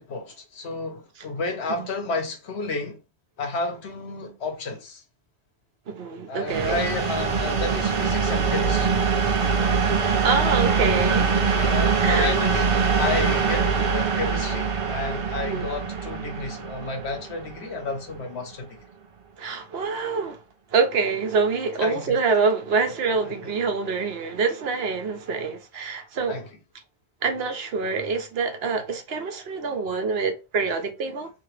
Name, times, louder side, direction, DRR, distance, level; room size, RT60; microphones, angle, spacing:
voice 1, 0.0-3.0 3.4-5.0 6.3-9.0 11.5-18.8 21.8-22.2 22.9-23.0 23.2-23.3 26.3-26.5, left 3 dB, 75° left, 1.2 m, -31 dB
voice 2, 5.9-6.8 10.2-11.7 12.0-12.3 15.4-15.7 19.4-20.4 20.7-26.4 27.2-31.3, right 4 dB, 70° right, 0.9 m, -26 dB
sound 1, 6.5-18.1, right 5 dB, 40° right, 0.5 m, -23 dB
2.8 x 2.8 x 3.1 m
omnidirectional pair, 1.1 m